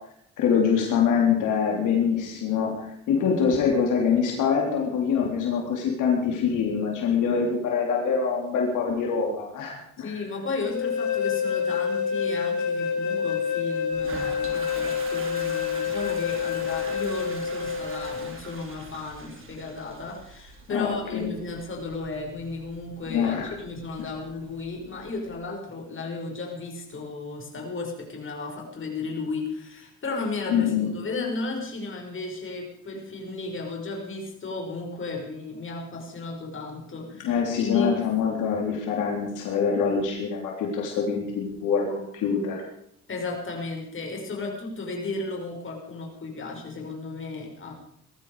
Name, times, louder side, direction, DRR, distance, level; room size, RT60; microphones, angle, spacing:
voice 1, 0.4-10.1 20.7-21.3 23.1-23.5 30.5-30.9 37.2-42.6, left 6 dB, 85° left, 0 dB, 3.7 m, -24 dB
voice 2, 10.0-38.0 43.1-47.7, left 3 dB, 40° left, 0 dB, 6.0 m, -34 dB
sound 1, 10.7-18.3, left 7 dB, 65° left, 3.3 m, -28 dB
Toilet flush, 13.9-25.4, right 4 dB, 45° right, 3.7 m, -44 dB
19.5 x 14.0 x 5.0 m, 0.73 s
cardioid pair, 90°, 30 cm